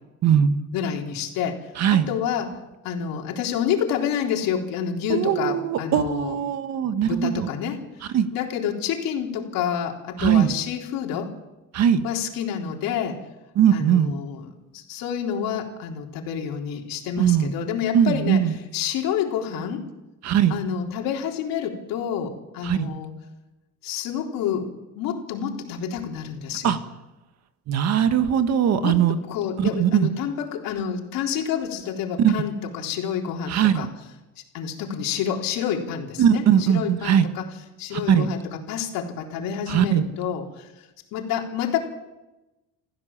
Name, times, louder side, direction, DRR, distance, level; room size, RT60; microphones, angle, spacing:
voice 1, 0.2-0.6 1.8-2.1 5.1-7.5 8.1-8.3 10.2-10.5 11.7-12.1 13.5-14.2 17.2-17.5 17.9-18.5 20.2-20.6 22.6-22.9 26.6-26.8 27.7-29.2 29.6-30.1 32.2-32.3 33.5-33.9 36.2-37.3 37.9-38.3 39.7-40.0, right 9 dB, 50° right, 9 dB, 1.6 m, -20 dB
voice 2, 0.7-2.6 2.8-6.4 7.0-7.8 8.3-11.3 12.0-13.2 13.7-14.5 14.7-18.4 18.7-19.9 20.5-23.1 23.8-26.8 28.8-33.9 34.5-37.5 37.8-38.4 38.7-40.7 41.1-41.8, left 8 dB, 70° left, 1 dB, 3.9 m, -28 dB
28.0 x 15.5 x 7.4 m, 1.0 s
cardioid pair, 160°, 35 cm